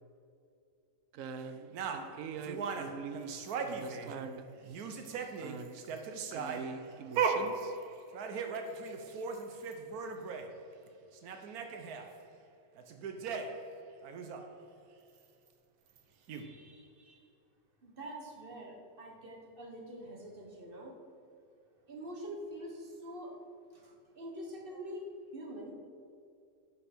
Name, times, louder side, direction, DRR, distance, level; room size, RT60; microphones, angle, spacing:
voice 1, 1.1-3.3 3.6-4.5 5.4-5.9 6.3-7.8, right 5 dB, 70° right, 9 dB, 1.0 m, -43 dB
sound 1, 1.7-4.3 4.6-10.5 10.9-11.0 11.1-12.1 12.8-13.7 14.0-14.4 16.0-16.1 16.3-16.4, right 5 dB, 85° right, 1.3 m, -38 dB
voice 2, 16.3-17.3 17.8-21.0 21.8-23.4 23.7-25.1 25.3-25.7, equal, 40° right, 0 dB, 1.4 m, -45 dB
10.5 x 5.6 x 4.3 m, 2.5 s
omnidirectional pair, 1.5 m